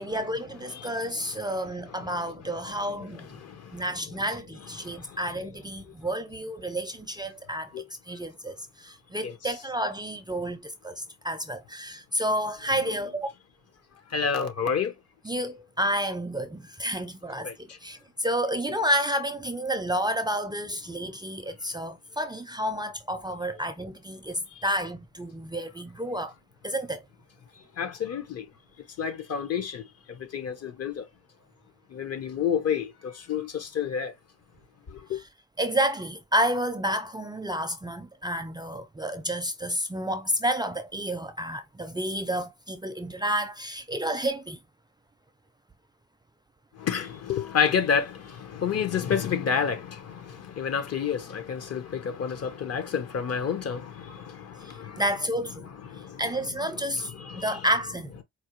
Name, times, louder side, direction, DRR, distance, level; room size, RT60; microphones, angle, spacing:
voice 1, 0.0-3.3 3.7-7.7 8.1-13.3 15.2-26.3 26.6-27.0 35.6-44.6 54.6-55.7 56.2-57.1 57.4-58.1, equal, 15° right, 0.4 m, -30 dB
voice 2, 14.1-14.9 17.4-17.5 27.8-28.4 29.0-29.8 30.3-31.0 31.9-34.1 35.1-35.2 46.8-55.0 55.8-56.2 56.7-57.7, left 7 dB, 55° left, 1.1 m, -29 dB
4.5 x 2.3 x 3.0 m
cardioid pair, 90°, 30 cm